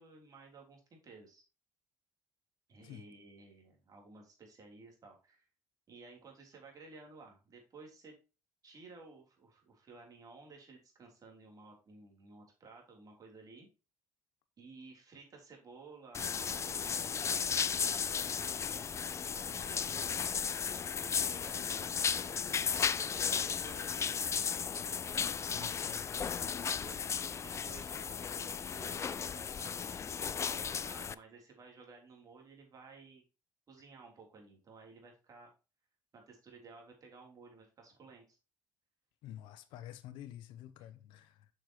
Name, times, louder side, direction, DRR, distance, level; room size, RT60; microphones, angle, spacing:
voice 1, 0.0-1.4 2.7-5.5 5.9-8.1 8.6-13.7 14.6-18.6 19.3-20.2 20.9-22.5 22.7-24.0 25.4-25.9 26.6-33.2 33.7-35.5 36.1-38.4, right 4 dB, 50° right, 3.3 m, -55 dB
sound 1, 16.1-31.1, left 7 dB, 35° left, 0.4 m, -35 dB
voice 2, 25.5-26.0 39.2-41.5, left 12 dB, 85° left, 0.7 m, -49 dB
7.2 x 6.5 x 3.0 m
supercardioid pair, 75°, 8 cm